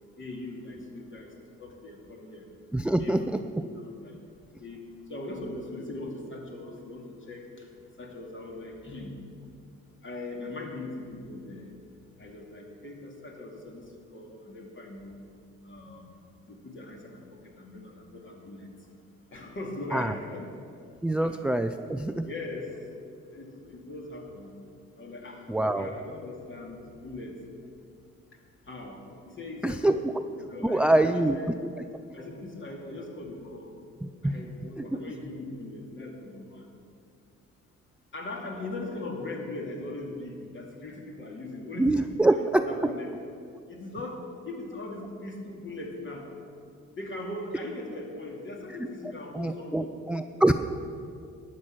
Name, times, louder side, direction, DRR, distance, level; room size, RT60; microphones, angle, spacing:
voice 1, 0.2-2.5 2.8-4.2 4.6-7.7 8.0-9.1 10.0-11.7 12.2-15.2 15.6-18.9 19.3-20.5 21.1-21.4 22.2-22.7 23.1-24.5 24.9-27.4 28.3-28.4 28.7-31.5 32.1-33.7 34.2-36.7 38.1-43.1 43.7-46.3 46.9-50.1, left 2 dB, 40° left, 0 dB, 2.5 m, -40 dB
voice 2, 2.7-3.2 19.9-20.1 21.0-22.3 25.5-25.9 29.6-30.0 30.6-31.4 31.8-31.9 34.2-34.4 34.8-34.9 41.8-42.6 49.3-50.5, right 1 dB, 5° right, 9 dB, 0.3 m, -24 dB
12.0 x 6.4 x 8.7 m, 2.4 s
cardioid pair, 90°, 30 cm